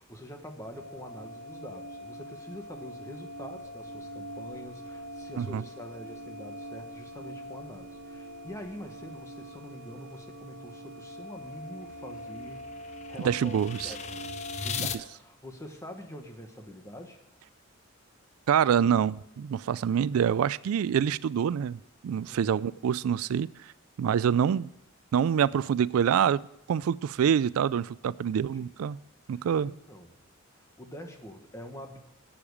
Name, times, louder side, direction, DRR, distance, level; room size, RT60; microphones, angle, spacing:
voice 1, 0.0-17.2 22.2-22.6 28.3-28.7 29.3-30.1 30.5-32.0, equal, 15° left, 1.4 m, -45 dB
sound 1, 0.7-14.9, equal, 50° right, 4.5 m, -43 dB
sound 2, 11.4-15.0, left 6 dB, 30° left, 0.5 m, -39 dB
voice 2, 13.2-13.9 18.5-23.5 24.0-24.7 25.1-26.4 26.7-29.0 29.3-29.7, right 8 dB, 85° right, 0.3 m, -26 dB
12.0 x 8.8 x 4.9 m
head